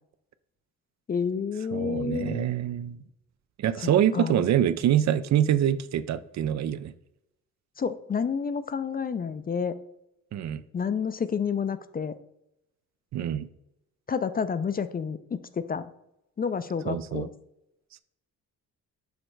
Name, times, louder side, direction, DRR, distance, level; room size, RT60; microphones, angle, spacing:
voice 1, 1.1-2.4 3.8-4.5 7.8-9.8 10.7-12.1 14.1-15.9 16.4-17.3, left 6 dB, 30° left, 13 dB, 0.4 m, -29 dB
voice 2, 1.7-3.0 3.6-6.9 10.3-10.6 13.1-13.5 16.9-17.3, right 10 dB, 60° right, 14 dB, 0.4 m, -25 dB
6.4 x 3.3 x 4.5 m, 0.84 s
cardioid pair, 80°, 32 cm